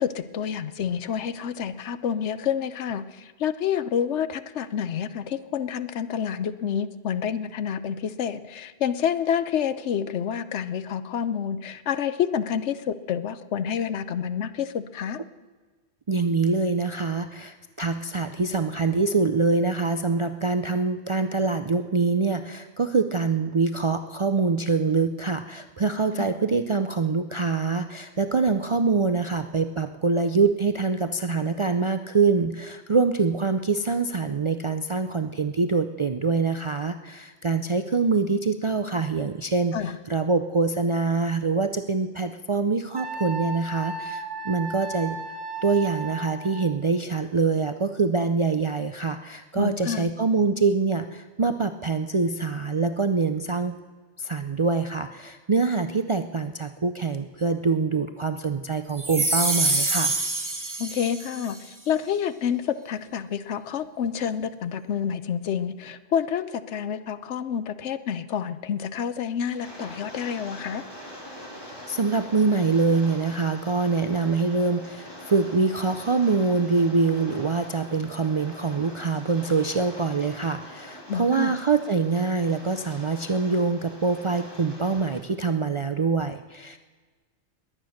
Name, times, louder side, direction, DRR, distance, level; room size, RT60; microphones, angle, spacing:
voice 1, 0.0-15.2 26.2-26.3 39.7-40.0 49.6-50.1 60.8-70.8 81.1-81.6, left 8 dB, 80° left, 13 dB, 1.0 m, -28 dB
voice 2, 16.1-45.2 45.6-53.7 54.2-60.1 71.6-86.8, right 4 dB, 45° right, 8 dB, 0.4 m, -25 dB
Wind instrument woodwind instrument, 42.9-46.7, right 2 dB, 85° right, 1.4 m, -35 dB
sound 1, 59.0-61.5, right 2 dB, 20° right, 0.9 m, -25 dB
Rain, 69.5-85.2, equal, 20° left, 2.4 m, -43 dB
21.0 x 8.9 x 6.4 m, 1.4 s
omnidirectional pair, 1.2 m